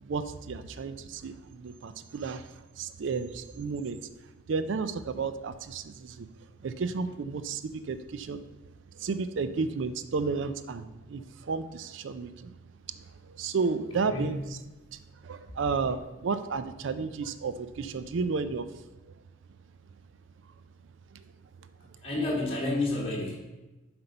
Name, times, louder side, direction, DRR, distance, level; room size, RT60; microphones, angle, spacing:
voice 1, 0.0-4.0 4.5-6.3 6.6-8.5 9.0-12.5 13.0-14.4 14.9-18.7, right 4 dB, 65° right, 11 dB, 0.4 m, -32 dB
voice 2, 13.9-14.3 22.0-23.3, left 2 dB, 30° left, -4 dB, 1.7 m, -30 dB
7.8 x 4.3 x 5.3 m, 1.1 s
head